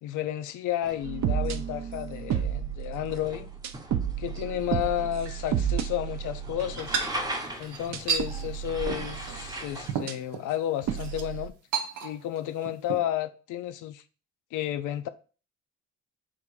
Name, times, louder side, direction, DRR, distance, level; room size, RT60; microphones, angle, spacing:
voice 1, 0.0-3.5 4.2-7.0 7.6-11.5 12.0-14.0 14.5-15.1, left 12 dB, 85° left, 0.5 m, -32 dB
sound 1, 0.8-9.9, right 1 dB, 15° right, 0.7 m, -40 dB
sound 2, 1.0-7.2 7.9-9.6 10.1-10.2 10.9-11.5, right 9 dB, 65° right, 0.5 m, -32 dB
sound 3, 6.8-8.3 8.9-9.1 9.5-9.6 9.9-10.5 11.0-11.2 11.7-12.4 12.7-13.0, right 7 dB, 90° right, 0.8 m, -32 dB
3.6 x 2.6 x 4.6 m
cardioid pair, 90°, 30 cm